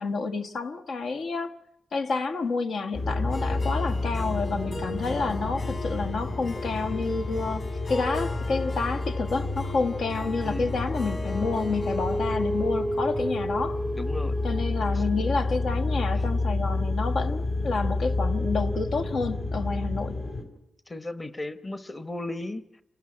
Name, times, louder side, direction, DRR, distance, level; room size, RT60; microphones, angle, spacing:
voice 1, 0.0-1.5 1.9-13.8 14.4-20.2, left 4 dB, 85° left, 1.4 m, -29 dB
sound 1, 2.9-20.4, left 2 dB, 65° left, 4.1 m, -29 dB
Harp, 3.3-15.4, left 2 dB, 40° left, 5.2 m, -41 dB
voice 2, 13.9-14.4 14.9-15.1 20.9-22.6, left 2 dB, 25° left, 1.0 m, -35 dB
27.5 x 13.0 x 9.7 m
wide cardioid pair, 125°, 0 cm